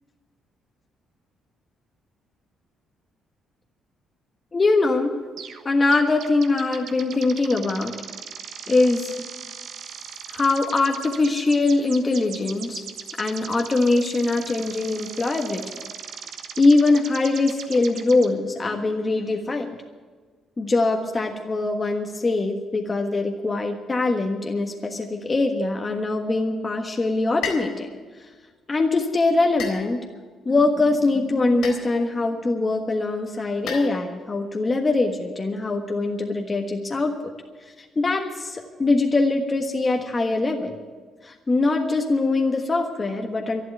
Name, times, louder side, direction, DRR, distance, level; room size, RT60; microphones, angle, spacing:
voice 1, 4.5-5.1 5.6-7.9 8.7-9.1 10.3-12.8 13.2-15.6 16.6-19.8 20.6-27.9 28.2-28.3 28.7-30.0 30.4-37.3 37.6-40.8 41.2-43.6, left 3 dB, 30° left, 2 dB, 1.4 m, -22 dB
sound 1, 5.4-5.6 5.9-18.3, right 7 dB, 70° right, 1.3 m, -39 dB
sound 2, 27.4-27.8 29.6-30.3 31.6-32.1 33.7-34.3, left 6 dB, 85° left, 4.0 m, -34 dB
11.5 x 11.5 x 9.5 m, 1.4 s
cardioid pair, 90°, 0 cm